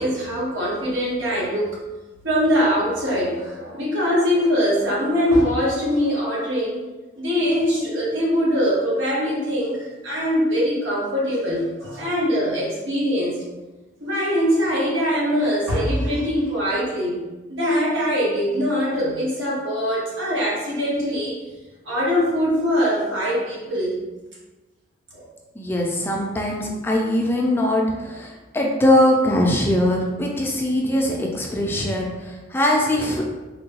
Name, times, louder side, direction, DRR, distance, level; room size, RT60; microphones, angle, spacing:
voice 1, 0.0-1.8 2.2-6.8 7.2-13.4 14.0-17.2 17.5-21.4 21.8-24.0 25.1-25.3, equal, 90° right, -6 dB, 1.2 m, -22 dB
voice 2, 25.6-33.3, left 1 dB, 10° left, -1 dB, 0.3 m, -21 dB
3.6 x 2.3 x 2.8 m, 1.1 s
head